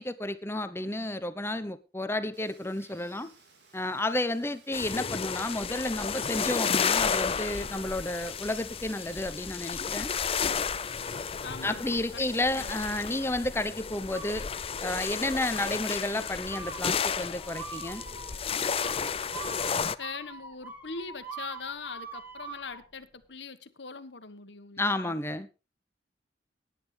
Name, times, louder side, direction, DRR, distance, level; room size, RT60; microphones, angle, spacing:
voice 1, 0.0-3.3 3.7-10.1 11.6-14.5 14.8-18.0 24.8-25.5, left 1 dB, 15° left, 0.9 m, -31 dB
Water, 2.3-13.0, right 4 dB, 90° right, 4.1 m, -58 dB
sound 1, 4.7-20.0, left 6 dB, 35° left, 0.5 m, -32 dB
voice 2, 11.4-12.8 20.0-25.1, left 4 dB, 85° left, 1.5 m, -42 dB
sound 2, 14.1-14.9 15.3-15.8 16.5-22.8, right 4 dB, 10° right, 2.7 m, -44 dB
17.5 x 10.5 x 3.4 m
head